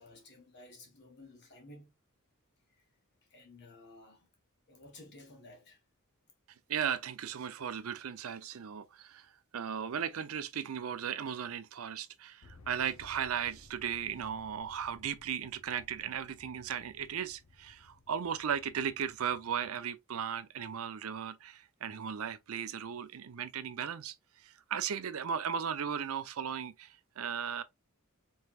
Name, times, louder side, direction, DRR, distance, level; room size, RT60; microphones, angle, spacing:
voice 1, 0.0-2.0 2.7-2.9 3.2-4.3 4.7-5.8, left 2 dB, 50° left, 1.4 m, -54 dB
voice 2, 6.7-27.6, right 8 dB, 65° right, 0.5 m, -36 dB
sound 1, 12.4-19.8, left 3 dB, 75° left, 0.7 m, -59 dB
4.4 x 3.3 x 2.3 m
head